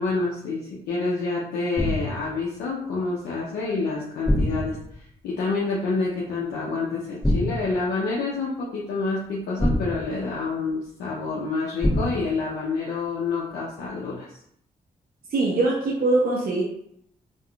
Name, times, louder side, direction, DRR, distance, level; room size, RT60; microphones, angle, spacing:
voice 1, 0.0-14.3, left 3 dB, 85° left, -5 dB, 0.5 m, -28 dB
sound 1, 1.8-2.3 4.3-5.0 7.2-7.8 9.6-10.4 11.8-12.4, left 1 dB, 5° left, 0.9 m, -25 dB
voice 2, 15.3-16.6, right 2 dB, 65° right, -3 dB, 0.6 m, -22 dB
3.5 x 2.4 x 2.3 m, 0.70 s
supercardioid pair, 40°, 17 cm